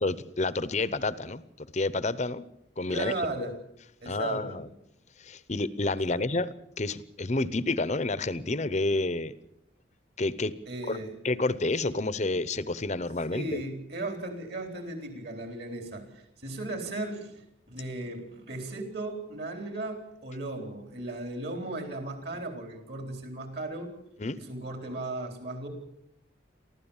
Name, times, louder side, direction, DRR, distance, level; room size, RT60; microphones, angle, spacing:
voice 1, 0.0-2.5 2.8-3.5 4.1-4.7 5.2-9.3 10.2-10.5 10.9-11.0 11.2-13.6 24.2-24.4, left 2 dB, 35° left, 16 dB, 0.8 m, -29 dB
voice 2, 2.9-3.5 4.0-4.6 6.1-6.2 10.7-11.1 13.3-23.9 24.4-25.7, right 2 dB, 55° right, 5 dB, 4.2 m, -36 dB
23.5 x 15.5 x 7.3 m, 0.78 s
head